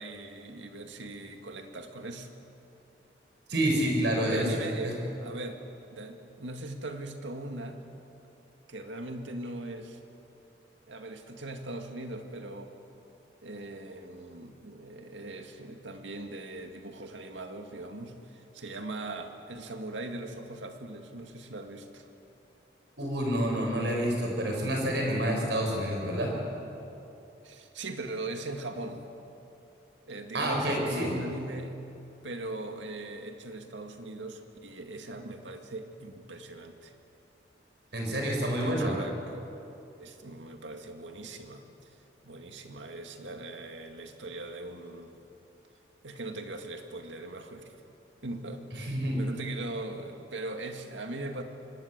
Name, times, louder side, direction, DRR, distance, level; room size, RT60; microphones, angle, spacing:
voice 1, 0.0-2.3 4.2-5.6 5.9-7.8 8.7-10.0 10.9-12.7 13.4-22.1 27.4-29.0 30.1-31.9 32.2-36.9 38.5-39.4 40.0-41.9 42.2-45.1 46.0-47.7 48.2-51.4, right 2 dB, 85° right, 5 dB, 2.2 m, -40 dB
voice 2, 3.5-4.5 4.8-4.9 23.0-26.3 30.3-31.1 37.9-38.9 48.7-49.2, right 1 dB, 65° right, 0 dB, 6.7 m, -28 dB
26.0 x 21.0 x 8.2 m, 2.9 s
head